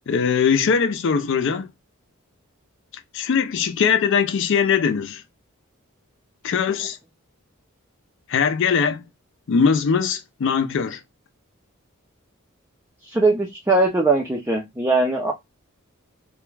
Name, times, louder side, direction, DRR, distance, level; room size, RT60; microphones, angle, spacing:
voice 1, 0.1-1.7 3.1-5.2 6.4-7.0 8.3-9.0 9.5-11.0, left 6 dB, 60° left, 0.4 m, -21 dB
voice 2, 13.1-15.3, right 2 dB, 10° right, 0.4 m, -20 dB
2.4 x 2.1 x 3.1 m
head